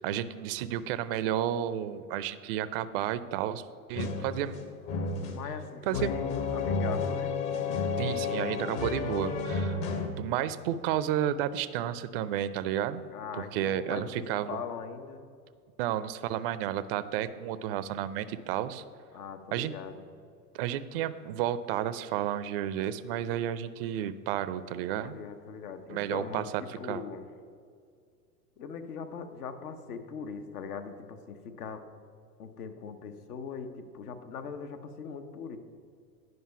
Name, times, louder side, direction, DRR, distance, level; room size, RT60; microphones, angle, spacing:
voice 1, 0.0-3.6 3.9-4.5 5.9-6.1 8.0-9.8 10.1-13.0 13.3-14.6 15.8-18.8 19.5-19.7 20.5-25.2 25.9-27.0, right 11 dB, 40° right, 14 dB, 0.4 m, -32 dB
sound 1, 4.0-10.1, left 4 dB, 50° left, 1.3 m, -32 dB
voice 2, 5.3-7.3 13.1-15.2 19.1-20.0 25.0-27.3 28.6-31.8 32.4-35.6, left 6 dB, 70° left, 8 dB, 1.0 m, -41 dB
9.4 x 5.4 x 5.7 m, 2.2 s
hypercardioid pair, 100°, 47 cm